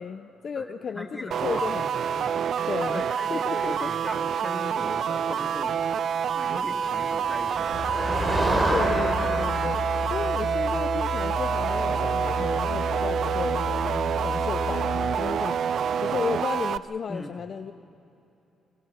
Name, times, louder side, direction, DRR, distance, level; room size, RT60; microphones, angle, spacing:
voice 1, 0.0-3.0 3.3-3.9 8.0-9.8 10.1-15.6 16.0-17.7, left 6 dB, 50° left, 10 dB, 0.6 m, -34 dB
voice 2, 0.5-1.7 2.9-5.7 6.3-8.5 17.1-17.4, left 1 dB, 5° left, 3 dB, 2.3 m, -39 dB
sound 1, 1.3-16.8, right 7 dB, 65° right, 0.5 m, -27 dB
Motor vehicle (road), 6.4-14.2, right 2 dB, 30° right, 3.8 m, -32 dB
sound 2, 7.7-15.2, left 6 dB, 75° left, 3.8 m, -34 dB
27.0 x 22.0 x 5.8 m, 2.9 s
cardioid pair, 90°, 0 cm